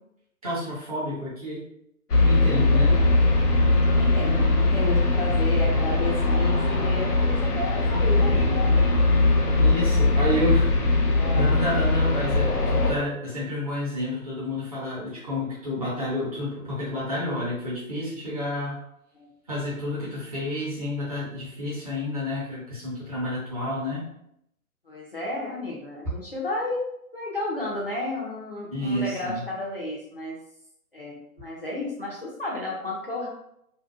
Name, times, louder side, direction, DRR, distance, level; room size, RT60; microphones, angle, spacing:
voice 1, 0.4-1.6 2.2-3.0 7.8-8.4 9.5-10.7 11.0-18.8 19.5-24.1 28.7-29.4, left 1 dB, 25° right, -8 dB, 0.6 m, -30 dB
sound 1, 2.1-12.9, left 2 dB, 85° left, 0.6 m, -21 dB
voice 2, 2.9-3.2 3.9-9.1 11.1-11.6 19.1-19.3 24.9-30.4 30.9-33.3, left 2 dB, 40° left, -5 dB, 0.4 m, -32 dB
2.5 x 2.1 x 2.3 m, 0.77 s
figure-of-eight pair, 135°, 45 cm